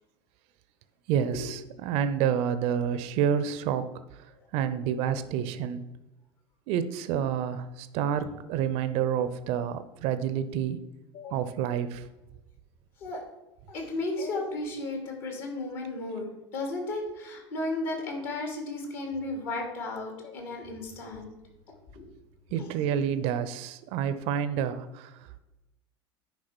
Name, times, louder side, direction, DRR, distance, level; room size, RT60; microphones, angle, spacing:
voice 1, 1.1-3.9 4.5-5.8 6.7-10.8 11.3-12.0 22.5-25.1, right 8 dB, 50° right, 12 dB, 0.7 m, -28 dB
voice 2, 13.7-21.3 21.9-22.1 22.6-22.7, left 2 dB, 55° left, 2 dB, 2.9 m, -34 dB
10.0 x 4.9 x 6.1 m, 1.0 s
figure-of-eight pair, 75°, 14 cm